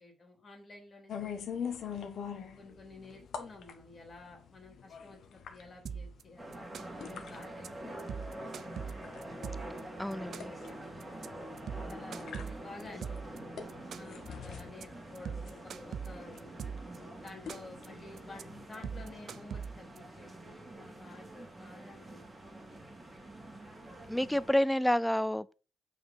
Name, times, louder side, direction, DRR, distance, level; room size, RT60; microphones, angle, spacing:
voice 1, 0.0-1.9 2.3-6.6 7.0-8.4 11.9-16.7 17.2-22.9, left 2 dB, 35° left, 2.8 m, -52 dB
sound 1, 1.1-18.7, left 7 dB, 60° left, 1.6 m, -45 dB
sound 2, 5.9-6.2 6.5-7.1 7.4-7.7 8.0-9.8 10.1-10.7 11.0-11.3 11.6-13.4 13.7-14.3 14.6-14.8 15.2-17.0 17.3-17.9 18.2-18.4 18.7-20.0, right 7 dB, 55° right, 0.6 m, -41 dB
sound 3, 6.4-24.5, right 1 dB, 15° right, 2.6 m, -46 dB
voice 2, 10.0-10.5 24.1-25.5, left 1 dB, 5° left, 0.4 m, -29 dB
8.9 x 5.2 x 5.3 m
cardioid pair, 145°, 0 cm